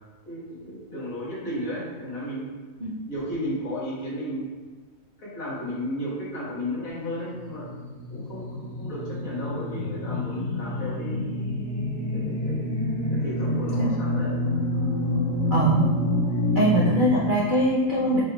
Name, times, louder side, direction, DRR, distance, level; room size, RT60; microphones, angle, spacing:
voice 1, 0.3-2.5 3.1-4.5 5.2-7.7 8.1-11.2 12.1-12.7 13.1-14.4, equal, 75° left, -7 dB, 2.0 m, -33 dB
sound 1, 7.1-16.9, left 1 dB, 35° left, 0.7 m, -27 dB
voice 2, 15.5-15.8 16.5-18.2, right 1 dB, 55° right, -5 dB, 0.6 m, -22 dB
6.2 x 2.4 x 3.3 m, 1.4 s
omnidirectional pair, 1.5 m